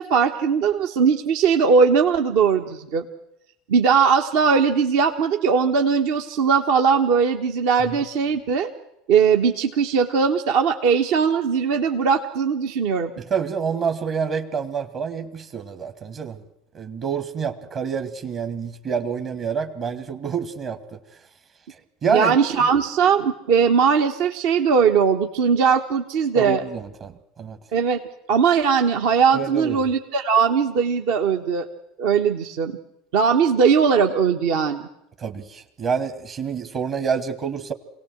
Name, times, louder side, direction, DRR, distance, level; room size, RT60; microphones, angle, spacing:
voice 1, 0.0-3.0 3.7-8.7 9.1-13.1 22.1-26.6 27.7-28.0 28.3-31.7 32.0-32.8 33.1-34.9, right 6 dB, 65° right, 4 dB, 1.2 m, -19 dB
voice 2, 13.3-16.4 16.7-21.0 22.0-22.4 26.3-27.1 27.4-27.6 29.3-29.8 35.2-37.7, right 6 dB, 45° right, 8 dB, 1.6 m, -27 dB
25.0 x 17.5 x 7.9 m, 0.86 s
hypercardioid pair, 80°, 0 cm